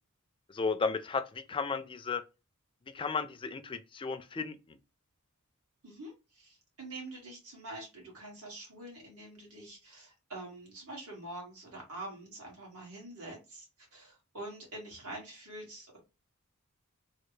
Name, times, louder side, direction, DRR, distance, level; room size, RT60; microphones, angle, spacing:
voice 1, 0.5-2.2 2.9-4.8, left 4 dB, 25° left, 0.3 m, -34 dB
voice 2, 5.8-13.7 13.9-16.0, right 2 dB, 90° right, 1.8 m, -45 dB
3.3 x 2.3 x 3.1 m
head